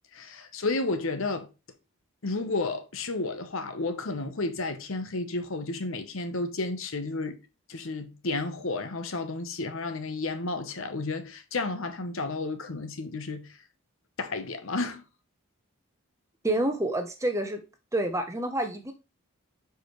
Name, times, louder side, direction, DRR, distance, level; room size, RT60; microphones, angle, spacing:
voice 1, 0.1-1.5 2.2-7.3 7.7-13.5 14.2-15.0, left 3 dB, 65° left, 0.9 m, -32 dB
voice 2, 16.4-17.6 17.9-18.9, right 1 dB, 15° right, 0.7 m, -28 dB
6.8 x 4.9 x 3.1 m
head